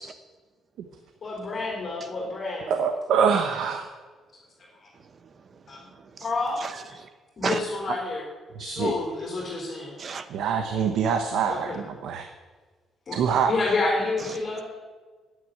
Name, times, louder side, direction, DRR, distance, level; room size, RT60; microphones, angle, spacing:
voice 1, 1.2-2.7 4.8-4.9 5.7-5.8 6.2-6.6 7.4-8.2 8.6-9.9 11.4-11.8 13.1-13.2 13.4-14.6, left 3 dB, 40° left, 4.0 m, -29 dB
voice 2, 2.7-3.8 8.5-8.9 10.3-12.3 13.1-13.5, right 6 dB, 75° right, 1.0 m, -25 dB
voice 3, 4.9-6.3 6.6-7.1 7.4-7.6 10.0-10.3 14.2-14.3, right 5 dB, 40° right, 1.0 m, -35 dB
9.4 x 8.6 x 9.3 m
cardioid pair, 130°, 0 cm